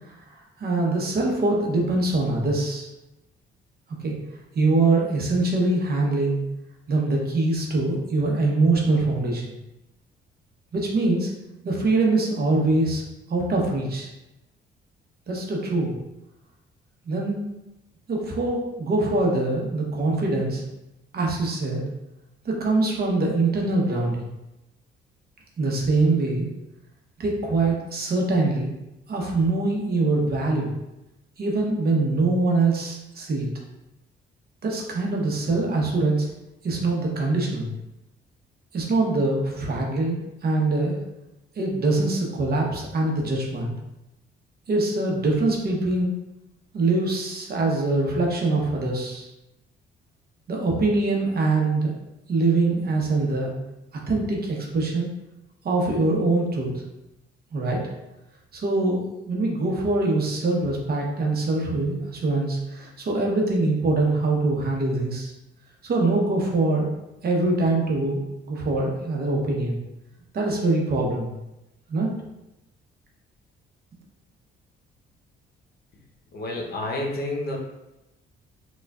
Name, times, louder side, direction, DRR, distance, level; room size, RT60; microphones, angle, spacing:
voice 1, 0.6-2.9 4.0-4.1 4.5-6.4 6.9-9.5 10.7-11.3 11.6-13.0 13.3-14.1 15.3-16.0 17.1-17.4 18.1-20.6 21.1-21.8 22.4-24.2 25.6-26.5 27.2-28.7 29.1-30.7 31.4-33.5 34.6-36.3 36.6-37.7 38.7-41.0 41.6-43.7 44.7-46.1 46.7-49.3 50.5-52.0 52.3-53.5 54.1-55.1 55.6-56.8 57.5-57.8 58.5-65.3 65.8-66.9 67.2-69.8 70.3-71.3 71.9-72.1, right 2 dB, 50° right, -1 dB, 0.9 m, -23 dB
voice 2, 76.3-77.6, left 1 dB, 50° left, -1 dB, 0.8 m, -29 dB
4.5 x 2.4 x 2.4 m, 0.93 s
cardioid pair, 90°, 20 cm